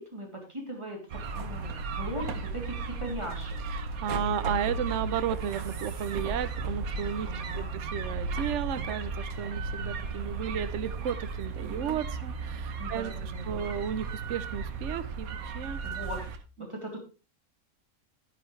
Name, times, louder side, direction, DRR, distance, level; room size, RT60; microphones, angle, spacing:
voice 1, 0.0-3.6 7.3-7.8 11.6-12.0 12.8-13.6 15.8-16.2 16.6-17.0, right 1 dB, 20° right, -1 dB, 3.0 m, -39 dB
sound 1, 1.1-16.4, right 4 dB, 85° right, 1.5 m, -35 dB
voice 2, 3.7-15.8, right 8 dB, 65° right, 12 dB, 1.0 m, -34 dB
10.5 x 9.9 x 3.2 m, 0.33 s
omnidirectional pair, 1.4 m